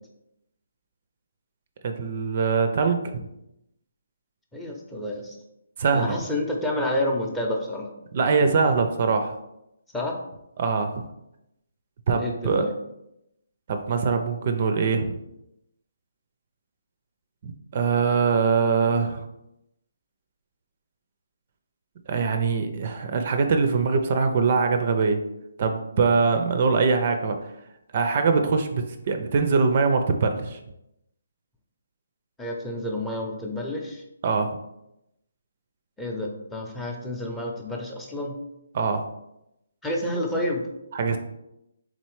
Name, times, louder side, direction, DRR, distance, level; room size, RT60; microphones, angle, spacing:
voice 1, 1.8-3.1 5.8-6.2 8.1-9.4 10.6-11.0 12.1-12.7 13.7-15.2 17.4-19.3 22.1-25.2 25.6-27.4 27.9-30.6 34.2-34.6 38.7-39.1 40.9-41.2, right 5 dB, 45° right, 7 dB, 0.4 m, -23 dB
voice 2, 4.5-5.4 5.9-7.9 9.9-10.1 12.2-12.7 32.4-34.0 36.0-38.4 39.8-40.6, left 1 dB, 5° left, -1 dB, 0.6 m, -29 dB
3.8 x 3.1 x 3.1 m, 0.85 s
figure-of-eight pair, 150°, 0 cm